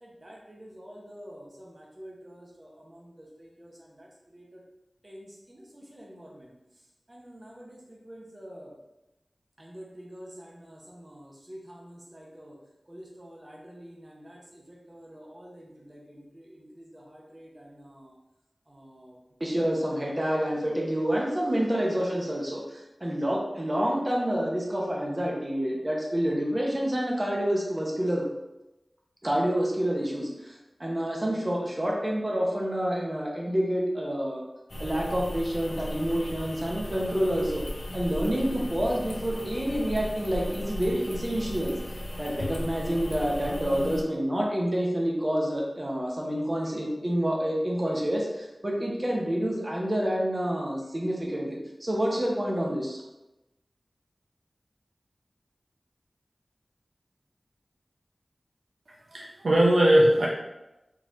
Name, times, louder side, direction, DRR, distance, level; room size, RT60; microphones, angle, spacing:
voice 1, 0.0-3.1 3.4-3.7 4.0-4.1 4.3-4.6 5.0-6.5 7.1-7.8 8.0-8.7 9.6-12.5 12.9-18.1 18.7-28.3 29.2-34.4 34.8-37.6 37.9-41.7 42.2-53.0, equal, 35° right, -2 dB, 0.9 m, -30 dB
sound 1, 34.7-44.0, left 1 dB, 60° left, 0.5 m, -36 dB
voice 2, 59.1-60.3, right 1 dB, 90° right, -4 dB, 0.6 m, -20 dB
3.8 x 3.0 x 2.6 m, 0.97 s
cardioid pair, 40°, 0 cm